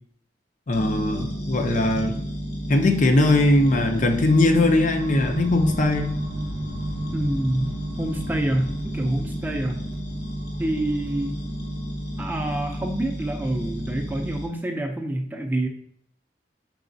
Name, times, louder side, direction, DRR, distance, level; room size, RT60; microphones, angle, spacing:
sound 1, 0.7-14.4, equal, 60° left, 1.3 m, -32 dB
voice 1, 0.7-2.2 2.7-6.1, left 2 dB, 45° left, 6 dB, 0.5 m, -20 dB
sound 2, 3.4-12.6, right 1 dB, 80° left, 1.0 m, -37 dB
voice 2, 7.1-9.8 10.6-11.3 12.2-15.7, right 1 dB, 10° right, 3 dB, 0.5 m, -27 dB
4.8 x 4.0 x 2.6 m, 0.65 s
head